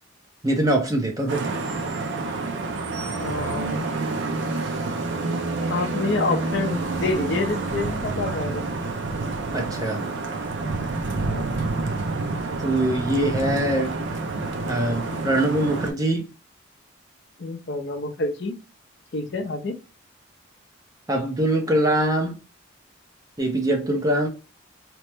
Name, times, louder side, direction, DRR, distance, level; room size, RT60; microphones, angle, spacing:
voice 1, 0.4-1.5 9.5-10.1 12.6-14.0 14.7-16.2 21.1-22.4 23.4-24.3, right 1 dB, 15° right, 0.5 m, -23 dB
Vehicle horn car horn honking / Traffic noise roadway noise, 1.3-15.9, right 3 dB, 65° right, 0.5 m, -28 dB
voice 2, 3.2-3.9 5.7-8.7 11.3-11.5 17.4-18.6 19.1-19.8, left 3 dB, 55° left, 0.5 m, -28 dB
2.9 x 2.0 x 3.3 m
head